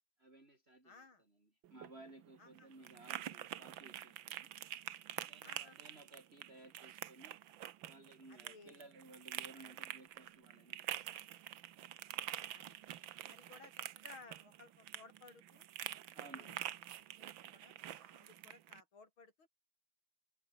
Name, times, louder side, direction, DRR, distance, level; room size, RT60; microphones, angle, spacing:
voice 1, 0.2-4.5 5.2-7.4 7.8-11.4 16.1-16.7, right 2 dB, 25° right, 5.4 m, -59 dB
voice 2, 0.8-1.2 2.4-2.7 5.4-6.0 8.3-8.8 12.5-12.8 13.3-15.7 16.3-19.5, left 4 dB, 65° left, 5.2 m, -60 dB
sound 1, 1.6-18.8, right 12 dB, 70° right, 1.6 m, -47 dB
omnidirectional pair, 2.4 m